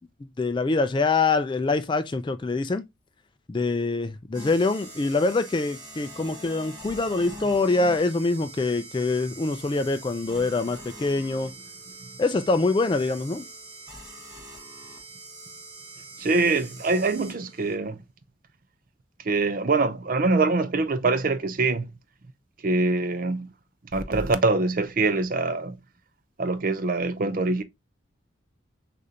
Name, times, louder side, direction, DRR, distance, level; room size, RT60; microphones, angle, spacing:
voice 1, 0.4-2.8 3.5-11.5 12.2-13.4, left 3 dB, 25° left, 0.3 m, -24 dB
sound 1, 4.3-17.7, right 2 dB, 20° right, 1.1 m, -43 dB
voice 2, 16.2-18.0 19.2-21.9 22.6-23.5 23.9-25.8 26.4-27.6, right 3 dB, 45° right, 0.5 m, -24 dB
6.5 x 2.6 x 2.7 m
head